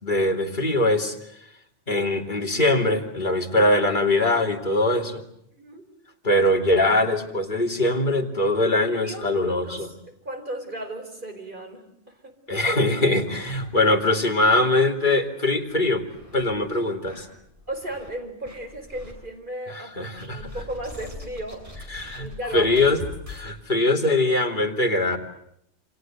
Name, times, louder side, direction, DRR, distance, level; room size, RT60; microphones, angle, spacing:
voice 1, 0.0-1.2 1.9-5.2 6.2-9.9 12.5-16.0 16.3-17.3 20.0-20.4 21.9-22.3 22.5-23.0 23.3-25.2, left 2 dB, 40° left, 2 dB, 3.3 m, -22 dB
voice 2, 5.6-5.9 9.0-12.4 17.7-22.9, right 1 dB, 45° right, 6 dB, 4.8 m, -36 dB
sound 1, 13.3-14.1 14.5-14.6 14.9-15.0 15.6-16.5 17.0-18.1 18.4-19.1 20.2-23.5, left 1 dB, 25° right, 7.1 m, -42 dB
28.5 x 26.5 x 7.8 m, 0.71 s
omnidirectional pair, 1.2 m